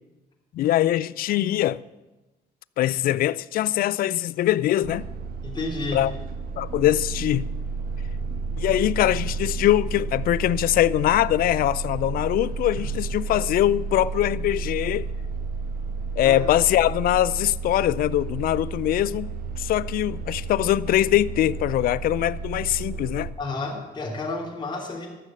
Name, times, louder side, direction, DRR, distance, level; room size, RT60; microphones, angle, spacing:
voice 1, 0.5-1.8 2.8-5.1 5.9-6.1 6.6-7.5 8.6-15.1 16.2-19.3 19.6-23.3, left 13 dB, 60° left, 0.4 m, -22 dB
sound 1, 4.8-23.3, right 4 dB, 60° right, 1.1 m, -32 dB
voice 2, 5.4-6.0 16.2-16.4 23.4-25.1, left 3 dB, 25° left, 3.2 m, -31 dB
13.5 x 6.4 x 7.6 m
cardioid pair, 110°, 17 cm